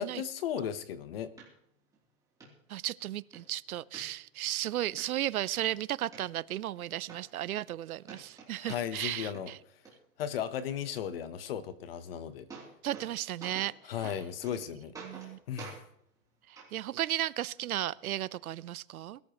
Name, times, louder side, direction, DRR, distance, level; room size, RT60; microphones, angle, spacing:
voice 1, 0.0-1.3 8.6-9.5 10.2-12.5 13.8-14.9 15.5-15.8, left 9 dB, 40° left, 1.0 m, -36 dB
sound 1, 1.4-1.5 1.9-2.0 2.4-2.5 3.0-3.4 3.9-4.5 5.0-5.1 5.5-6.2 6.8-6.9 7.1-7.8 8.0-9.1 9.3-9.9 11.9-12.0 12.3-13.1 13.4-13.7 14.0-14.6 14.9-15.3 15.6-15.8 16.6-16.7 17.6-17.7, right 5 dB, 5° right, 3.1 m, -47 dB
voice 2, 2.7-9.6 12.8-13.7 15.0-15.4 16.5-19.2, right 13 dB, 65° right, 0.6 m, -34 dB
22.0 x 13.5 x 3.0 m
hypercardioid pair, 170°, 47 cm